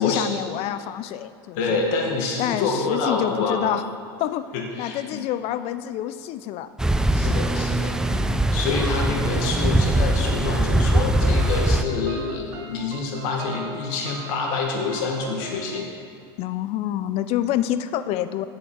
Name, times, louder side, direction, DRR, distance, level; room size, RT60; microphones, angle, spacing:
voice 1, 0.0-1.8 2.4-3.8 4.1-4.5 4.8-6.7 8.1-8.5 9.1-9.3 16.4-18.5, left 12 dB, 55° left, 12 dB, 0.5 m, -27 dB
voice 2, 1.5-3.6 4.5-5.2 7.1-8.0 8.5-15.9, left 4 dB, 70° left, 1 dB, 1.7 m, -27 dB
sound 1, 6.8-11.8, right 1 dB, 5° right, 0.3 m, -21 dB
sound 2, 10.9-15.9, right 5 dB, 65° right, 1.4 m, -41 dB
7.8 x 7.7 x 4.7 m, 2.3 s
supercardioid pair, 110°, 13 cm